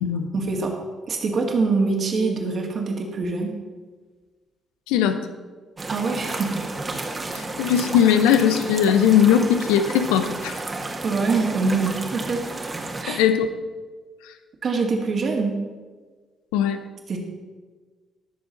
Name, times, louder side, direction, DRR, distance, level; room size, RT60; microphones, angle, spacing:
voice 1, 0.3-0.7 1.1-3.6 5.9-6.6 11.0-12.4 13.0-13.2 14.6-15.6 17.1-17.2, right 4 dB, 50° right, 1 dB, 2.3 m, -24 dB
voice 2, 4.9-5.2 7.3-10.6 13.1-13.5 16.5-16.8, left 9 dB, 70° left, 9 dB, 0.8 m, -19 dB
sound 1, 5.8-13.0, right 2 dB, 30° right, 1.8 m, -32 dB
18.5 x 7.0 x 4.1 m, 1.4 s
figure-of-eight pair, 45°, 0 cm